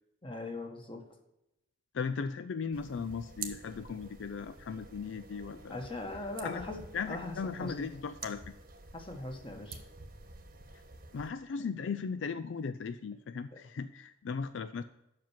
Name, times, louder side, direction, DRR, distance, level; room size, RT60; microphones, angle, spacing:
voice 1, 0.2-1.0 5.7-7.9 8.9-9.8, left 2 dB, 30° left, 3 dB, 1.5 m, -40 dB
voice 2, 1.9-5.8 6.4-6.6 6.9-8.4 11.1-14.8, left 5 dB, 70° left, 12 dB, 0.4 m, -37 dB
sound 1, 2.7-11.3, right 5 dB, 50° right, 1.1 m, -49 dB
7.6 x 5.9 x 7.3 m, 0.89 s
head